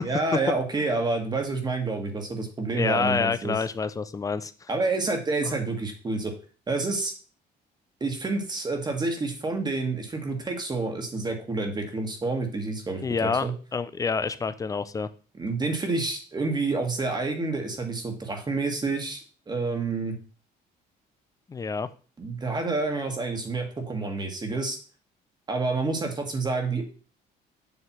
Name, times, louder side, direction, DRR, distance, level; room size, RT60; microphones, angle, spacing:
voice 1, 0.0-3.6 4.7-6.3 6.7-7.1 8.0-13.5 15.4-19.2 19.5-20.1 22.2-24.8 25.5-26.8, right 3 dB, 25° right, 4 dB, 1.5 m, -28 dB
voice 2, 2.7-4.5 5.4-5.6 13.0-15.1 21.5-21.9, left 5 dB, 20° left, 14 dB, 0.5 m, -27 dB
7.1 x 3.3 x 6.0 m, 0.38 s
cardioid pair, 110°, 17 cm